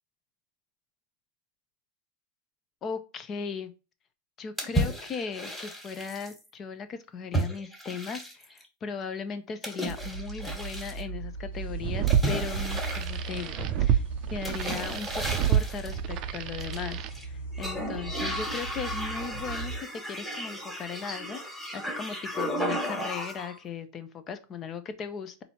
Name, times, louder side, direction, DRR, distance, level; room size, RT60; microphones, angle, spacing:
voice 1, 2.8-3.7 4.4-14.0 14.3-25.4, left 6 dB, 30° left, 10 dB, 0.7 m, -37 dB
sound 1, 4.6-6.4 7.3-8.6 9.6-11.0 12.1-13.8 14.4-16.0 16.6-17.2 17.5-23.5, equal, 10° left, 1.6 m, -34 dB
sound 2, 9.8-19.8, right 3 dB, 85° left, 1.4 m, -38 dB
sound 3, 11.6-17.1, right 10 dB, 45° right, 0.5 m, -29 dB
4.0 x 2.8 x 4.4 m, 0.31 s
hypercardioid pair, 110°, 0 cm